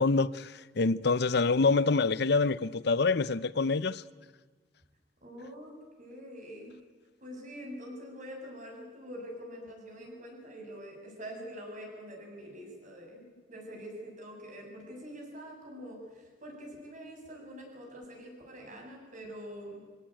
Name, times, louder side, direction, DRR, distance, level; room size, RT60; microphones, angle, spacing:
voice 1, 0.0-4.0, left 4 dB, 65° left, 0.7 m, -26 dB
voice 2, 5.2-6.8 7.2-13.2 13.5-19.8, equal, 45° right, 7.4 m, -45 dB
25.0 x 17.5 x 9.1 m
head